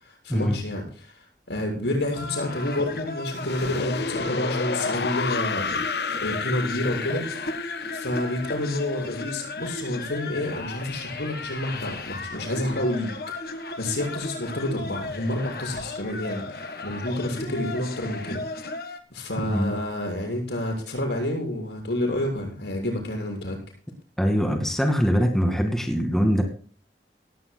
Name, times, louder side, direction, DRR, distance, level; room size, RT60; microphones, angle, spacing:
voice 1, 0.0-7.6 7.9-13.1 13.4-18.7 19.1-23.6, left 1 dB, 90° left, 1 dB, 7.1 m, -29 dB
sound 1, 2.2-19.0, left 2 dB, 55° left, 1.6 m, -36 dB
sound 2, 3.3-10.2, left 5 dB, 70° left, 0.8 m, -31 dB
voice 2, 19.4-19.7 24.2-26.4, equal, 5° left, 3 dB, 2.1 m, -23 dB
17.5 x 16.5 x 2.3 m, 0.41 s
head